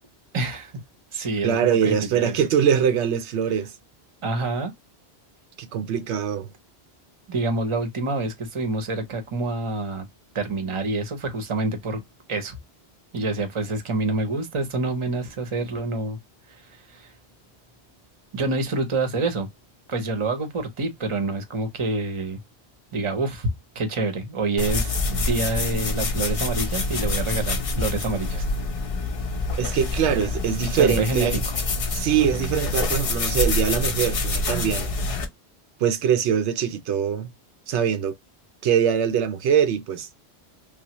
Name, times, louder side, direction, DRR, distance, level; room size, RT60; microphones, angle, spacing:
voice 1, 0.3-0.7 1.1-2.3 4.2-4.7 7.3-10.1 10.3-12.0 12.3-12.6 13.1-16.2 16.5-17.1 18.3-19.5 19.9-22.4 22.9-23.5 23.7-28.5 30.7-31.4, right 2 dB, 35° right, 0.7 m, -27 dB
voice 2, 1.4-3.7 5.6-6.5 29.6-31.4 31.9-34.9 35.8-37.3 37.7-38.2 38.6-40.1, right 8 dB, 90° right, 0.9 m, -23 dB
sound 1, 24.6-35.3, left 3 dB, 45° left, 0.5 m, -26 dB
3.2 x 2.1 x 2.8 m
omnidirectional pair, 1.1 m